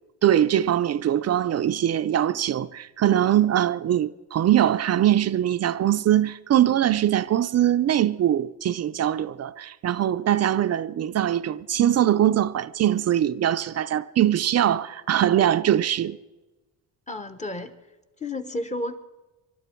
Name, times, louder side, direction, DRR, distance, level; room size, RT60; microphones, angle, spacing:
voice 1, 0.2-16.2, right 11 dB, 45° right, 0.5 m, -22 dB
voice 2, 17.1-17.7 18.2-18.9, left 1 dB, 20° left, 1.0 m, -31 dB
26.0 x 12.5 x 4.5 m
cardioid pair, 140°, 37 cm